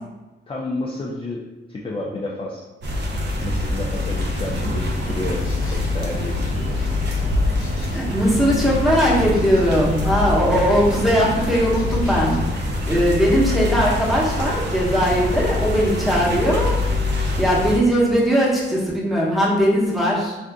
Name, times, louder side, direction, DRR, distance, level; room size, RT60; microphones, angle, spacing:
voice 1, 0.5-1.4 1.7-2.7 3.4-6.8, left 2 dB, 25° left, -4 dB, 0.4 m, -30 dB
sound 1, 2.8-17.8, left 2 dB, 55° right, 0.6 m, -24 dB
sound 2, 3.9-12.6, left 4 dB, 85° left, 0.6 m, -33 dB
voice 2, 7.7-16.8 17.0-20.4, equal, ahead, -6 dB, 0.9 m, -20 dB
2.6 x 2.5 x 3.4 m, 1.1 s
cardioid pair, 90°, 21 cm